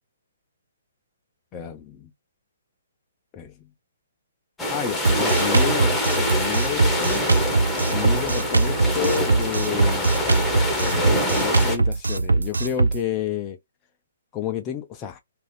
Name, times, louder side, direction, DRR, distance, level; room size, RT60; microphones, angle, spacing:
voice 1, 1.5-2.1 3.3-3.7 4.7-7.2 7.9-10.1 10.7-13.6 14.3-15.2, left 10 dB, 25° left, 0.4 m, -30 dB
sound 1, 4.6-11.8, left 1 dB, 5° left, 0.8 m, -25 dB
Drum kit, 5.0-13.0, right 3 dB, 80° right, 0.3 m, -22 dB
2.5 x 2.3 x 3.2 m
figure-of-eight pair, 130°, 0 cm